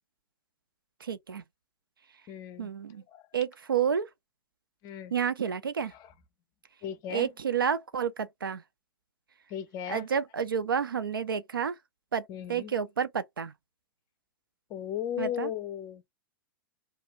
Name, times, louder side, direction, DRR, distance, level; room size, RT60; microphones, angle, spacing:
voice 1, 1.0-1.4 2.6-3.0 3.3-4.1 5.1-5.9 7.1-8.6 9.9-11.8 12.1-13.5 15.2-15.5, right 7 dB, 75° right, 0.5 m, -30 dB
voice 2, 2.3-2.7 3.1-3.3 4.8-5.1 5.9-6.1 6.8-7.3 9.5-10.1 12.3-12.7 14.7-16.0, left 10 dB, 30° left, 0.5 m, -36 dB
2.7 x 2.3 x 3.0 m
figure-of-eight pair, 100°, 12 cm